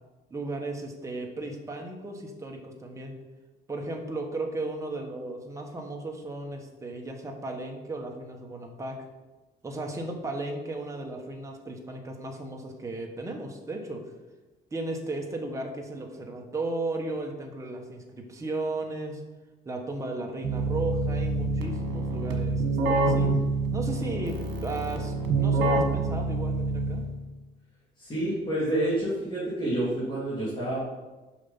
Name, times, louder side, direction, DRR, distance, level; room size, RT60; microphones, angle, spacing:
voice 1, 0.3-3.1 3.7-9.1 9.6-14.0 14.7-19.2 19.6-23.3 23.7-27.0, right 2 dB, 15° right, 1 dB, 1.1 m, -35 dB
Keyboard (musical), 20.4-27.3, right 3 dB, 80° right, 1.5 m, -27 dB
voice 2, 28.0-30.8, right 1 dB, 25° left, -9 dB, 2.8 m, -28 dB
7.1 x 5.7 x 5.6 m, 1.2 s
cardioid pair, 150°, 18 cm